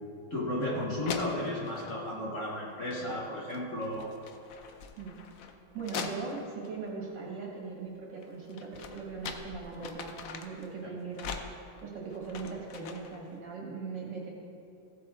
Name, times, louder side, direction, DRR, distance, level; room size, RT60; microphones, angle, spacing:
voice 1, 0.3-4.1, left 1 dB, 40° left, -4 dB, 1.4 m, -33 dB
sound 1, 0.6-0.7 1.0-2.0 2.8-3.2 3.5-6.7 8.2-10.7 11.1-13.2, left 6 dB, 75° left, 0.7 m, -42 dB
voice 2, 5.7-11.4 11.8-14.3, right 4 dB, 60° right, -2 dB, 2.3 m, -40 dB
15.5 x 7.8 x 3.5 m, 2.7 s
omnidirectional pair, 2.3 m